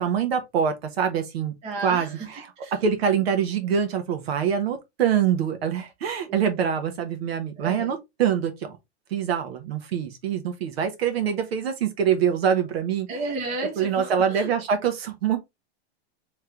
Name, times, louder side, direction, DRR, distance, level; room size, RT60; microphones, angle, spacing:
voice 1, 0.0-1.5 1.8-2.5 2.8-8.8 9.1-13.1 13.8-15.4, right 8 dB, 65° right, 1.1 m, -24 dB
voice 2, 1.6-2.8 6.3-6.6 7.6-8.0 13.1-14.5, right 2 dB, 20° right, 1.1 m, -33 dB
3.2 x 3.2 x 3.7 m
supercardioid pair, 170°, 32 cm